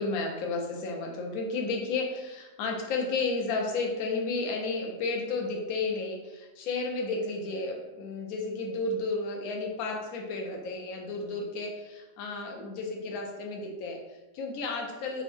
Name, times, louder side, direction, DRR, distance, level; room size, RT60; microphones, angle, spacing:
voice 1, 0.0-15.2, left 3 dB, 70° left, 1 dB, 1.0 m, -32 dB
3.5 x 2.0 x 3.3 m, 1.1 s
omnidirectional pair, 1.8 m